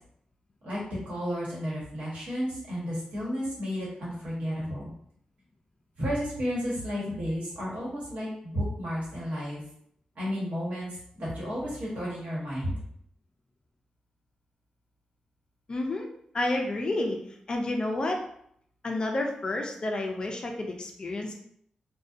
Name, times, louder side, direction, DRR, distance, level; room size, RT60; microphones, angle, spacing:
voice 1, 0.6-4.9 6.0-9.6 10.1-12.7, equal, 70° right, -6 dB, 1.1 m, -32 dB
voice 2, 15.7-16.1 16.3-17.2 17.5-18.2 18.8-21.3, left 2 dB, 35° left, 2 dB, 0.3 m, -30 dB
2.6 x 2.2 x 2.4 m, 0.68 s
wide cardioid pair, 160°, 2 cm